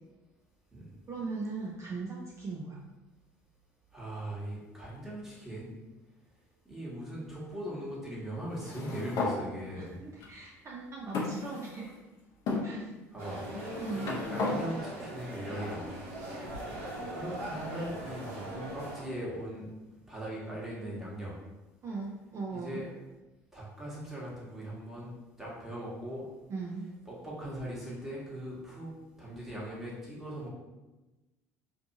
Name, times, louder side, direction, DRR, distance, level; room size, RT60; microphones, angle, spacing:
voice 1, 1.1-2.8 10.0-11.9 12.6-12.9 13.8-14.1 21.8-22.8 26.5-26.9, right 4 dB, 35° right, -3 dB, 0.5 m, -39 dB
voice 2, 3.9-5.7 6.6-10.0 13.1-13.4 13.9-15.9 16.4-16.7 17.1-19.7 20.1-21.4 22.5-22.9 23.5-25.1 25.4-26.2 27.1-28.9 29.2-30.5, right 1 dB, 5° right, -7 dB, 1.2 m, -40 dB
sound 1, 8.5-9.4 10.2-10.3 11.1-12.0 12.5-12.7 13.5-14.6, left 3 dB, 55° left, 0.6 m, -33 dB
sound 2, 13.2-19.0, right 1 dB, 80° right, 0.7 m, -40 dB
2.6 x 2.3 x 2.6 m, 1.1 s
hypercardioid pair, 70°, 8 cm